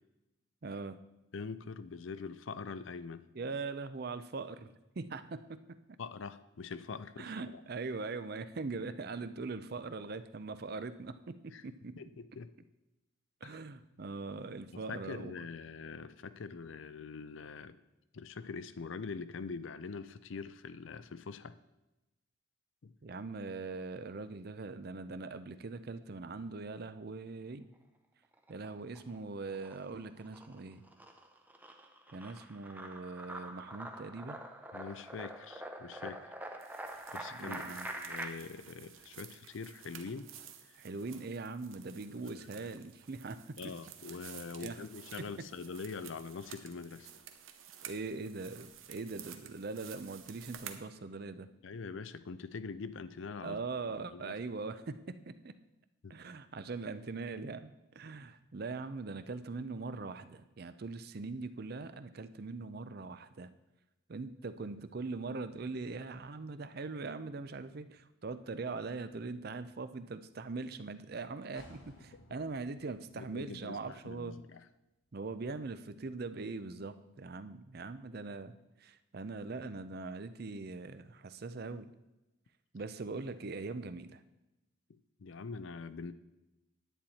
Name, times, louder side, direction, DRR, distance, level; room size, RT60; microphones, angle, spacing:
voice 1, 0.6-1.0 3.3-5.6 7.2-12.0 13.4-15.4 23.0-27.7 28.5-30.8 32.1-34.4 37.3-37.9 40.8-43.6 44.6-44.8 45.2-45.3 47.9-51.5 53.4-55.5 56.1-63.5 64.1-74.4 75.1-78.5 78.8-81.9 82.7-84.2, right 3 dB, 50° right, 12 dB, 0.5 m, -41 dB
voice 2, 1.3-3.2 6.0-7.6 11.5-11.6 12.0-12.5 13.4-13.6 14.7-17.8 18.1-21.5 22.8-22.9 34.7-36.3 37.1-40.3 40.7-40.8 42.1-42.7 43.6-47.1 51.6-53.6 54.0-54.3 56.0-56.2 72.1-72.2 73.2-74.6 84.9-86.1, left 4 dB, 70° left, 13 dB, 0.5 m, -44 dB
sound 1, 28.3-29.2 29.5-38.3, right 1 dB, 10° right, 0.6 m, -45 dB
sound 2, 36.6-50.8, right 9 dB, 75° right, 0.8 m, -52 dB
sound 3, 71.6-75.3 75.7-75.8, left 1 dB, 85° left, 2.2 m, -61 dB
10.0 x 8.8 x 4.2 m, 0.98 s
head